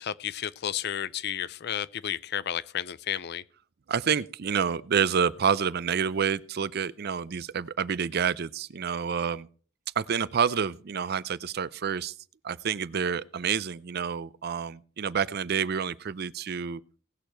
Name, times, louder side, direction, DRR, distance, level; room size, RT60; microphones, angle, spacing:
voice 1, 0.0-3.4, left 10 dB, 55° left, 0.5 m, -32 dB
voice 2, 3.9-9.5 10.0-12.1 12.4-16.8, right 7 dB, 50° right, 0.5 m, -28 dB
18.5 x 6.6 x 4.4 m
head